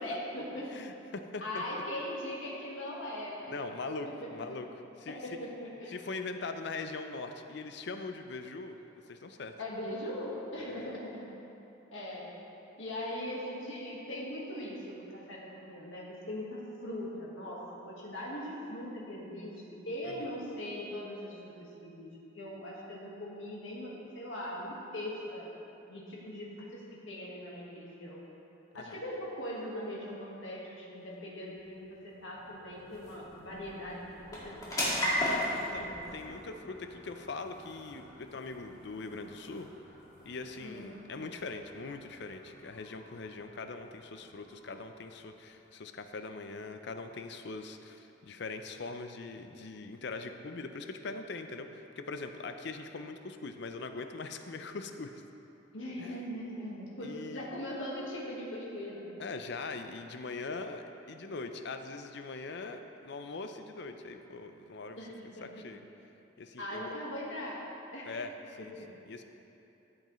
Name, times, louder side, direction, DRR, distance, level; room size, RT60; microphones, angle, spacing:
voice 1, 0.0-0.7 1.4-3.6 4.1-4.3 5.1-5.9 9.6-11.3 11.9-12.3 12.8-21.6 21.8-25.5 25.9-28.2 28.7-36.1 40.6-40.9 55.7-59.1 65.0-65.4 66.6-68.1 68.6-68.9, left 1 dB, 80° left, -5 dB, 1.6 m, -40 dB
voice 2, 0.7-1.6 3.5-4.7 5.0-5.2 5.9-8.7 9.1-9.5 10.7-10.9 20.0-20.3 28.8-29.0 35.7-39.7 40.3-55.1 56.0-56.2 57.0-57.5 59.2-65.0 65.4-65.8 66.4-66.9 68.1-68.7 69.1-69.2, left 3 dB, 60° left, 7 dB, 0.5 m, -41 dB
sound 1, 31.3-46.2, left 1 dB, 20° left, 2.0 m, -40 dB
13.0 x 7.8 x 3.1 m, 2.9 s
head